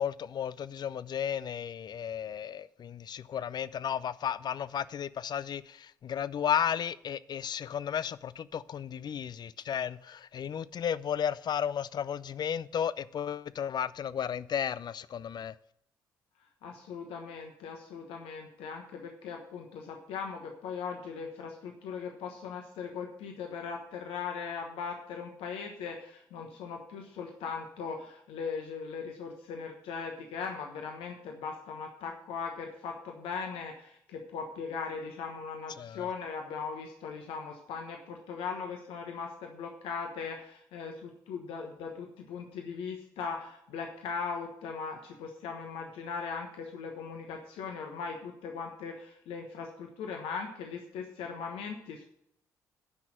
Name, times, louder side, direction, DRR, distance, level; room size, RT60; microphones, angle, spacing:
voice 1, 0.0-15.5 35.8-36.1, left 8 dB, 45° left, 0.5 m, -34 dB
voice 2, 16.6-52.0, left 5 dB, 65° left, 1.2 m, -39 dB
9.6 x 5.9 x 7.5 m
figure-of-eight pair, 45°, 10 cm